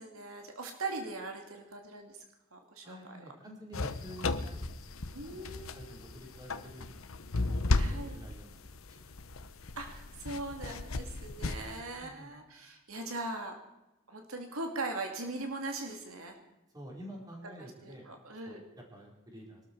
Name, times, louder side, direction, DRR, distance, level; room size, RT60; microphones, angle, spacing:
voice 1, 0.0-2.2 2.5-3.2 5.1-6.0 7.7-8.2 9.8-13.6 14.1-16.4 17.6-18.6, right 2 dB, 80° right, 4 dB, 2.5 m, -40 dB
voice 2, 2.8-7.6 7.9-8.6 8.9-9.0 12.0-12.3 16.7-18.0 18.4-18.6 18.9-19.6, equal, 20° right, -1 dB, 4.8 m, -49 dB
sound 1, 3.7-11.8, left 2 dB, 75° left, 1.0 m, -35 dB
22.5 x 13.0 x 4.8 m, 0.96 s
head